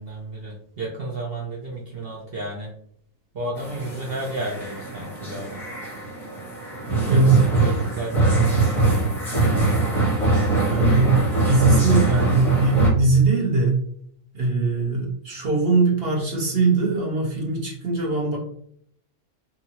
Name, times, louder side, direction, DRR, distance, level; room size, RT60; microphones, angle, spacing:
voice 1, 0.0-2.7 3.3-5.6 7.1-8.6, right 2 dB, 65° right, -3 dB, 0.5 m, -32 dB
sound 1, 3.6-12.9, right 2 dB, ahead, 0.7 m, -22 dB
voice 2, 7.0-7.4 10.7-13.8 14.3-18.4, right 3 dB, 45° right, -2 dB, 0.9 m, -21 dB
2.8 x 2.6 x 2.8 m, 0.66 s
omnidirectional pair, 1.6 m